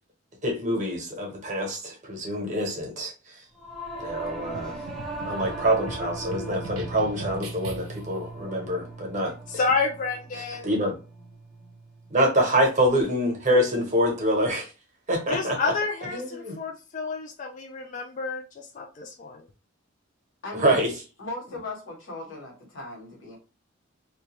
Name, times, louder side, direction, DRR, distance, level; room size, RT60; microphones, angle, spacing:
voice 1, 0.4-3.1 4.0-4.7 5.2-9.3 10.4-11.0 12.1-14.7 15.1-15.7 16.1-16.6 20.5-20.9, equal, 35° right, 0 dB, 0.8 m, -25 dB
Singing / Musical instrument, 3.6-13.1, right 2 dB, ahead, 0.6 m, -39 dB
sound 1, 4.5-8.2, right 2 dB, 90° right, 0.6 m, -40 dB
voice 2, 9.5-10.7 15.3-19.5, left 4 dB, 35° left, 2 dB, 0.3 m, -29 dB
voice 3, 20.4-20.9 21.2-23.4, left 2 dB, 65° left, 0 dB, 1.0 m, -37 dB
2.2 x 2.2 x 2.9 m, 0.33 s
head